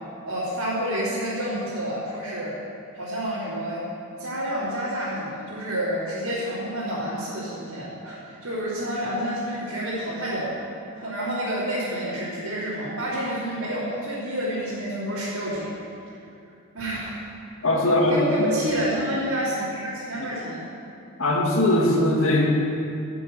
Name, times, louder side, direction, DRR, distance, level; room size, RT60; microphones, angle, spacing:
voice 1, 0.2-2.5 2.9-3.8 4.2-10.6 11.0-15.8 16.7-17.1 17.9-20.6, equal, 85° right, -11 dB, 3.2 m, -29 dB
voice 2, 17.6-18.5 21.2-22.5, left 1 dB, 70° left, -1 dB, 2.0 m, -20 dB
11.5 x 7.5 x 7.8 m, 2.6 s
head